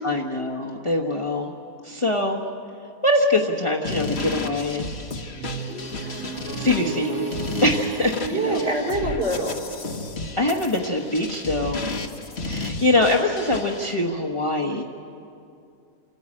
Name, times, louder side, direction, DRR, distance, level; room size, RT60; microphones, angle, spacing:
voice 1, 0.0-1.5 1.8-2.4 3.0-4.9 6.6-7.3 7.6-8.6 10.4-11.8 12.4-14.8, left 2 dB, 25° left, 0 dB, 1.2 m, -23 dB
sound 1, 3.8-13.9, left 3 dB, 45° left, 1.4 m, -33 dB
sound 2, 5.3-11.1, right 5 dB, 70° right, 2.5 m, -33 dB
voice 2, 5.7-6.4 8.2-9.6, right 1 dB, 40° right, -2 dB, 4.0 m, -27 dB
28.0 x 14.5 x 8.6 m, 2.5 s
omnidirectional pair, 1.5 m